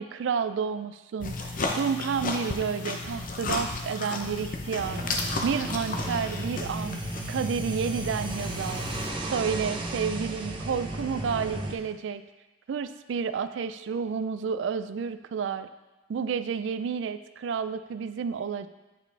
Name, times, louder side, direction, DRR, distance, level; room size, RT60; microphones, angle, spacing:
voice 1, 0.0-5.0 5.4-7.0 7.3-8.8 9.2-12.2 12.7-15.7 16.1-18.7, right 6 dB, 70° right, 12 dB, 0.3 m, -30 dB
sound 1, 1.2-9.1, left 3 dB, 45° left, 0.7 m, -34 dB
sound 2, 4.8-11.7, right 1 dB, 25° right, 0.7 m, -34 dB
8.6 x 4.9 x 3.4 m, 1.1 s
head